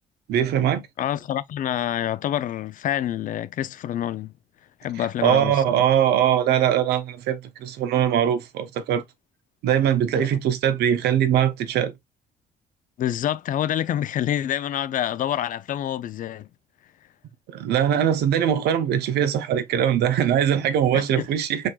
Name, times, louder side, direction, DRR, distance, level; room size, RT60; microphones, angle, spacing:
voice 1, 0.3-0.8 5.2-9.0 9.6-11.9 17.5-21.7, right 9 dB, 75° right, 0.9 m, -21 dB
voice 2, 1.0-4.3 4.8-5.8 10.2-10.4 13.0-16.5 20.9-21.3, left 11 dB, 50° left, 0.5 m, -27 dB
4.8 x 4.3 x 2.3 m
cardioid pair, 110°, 17 cm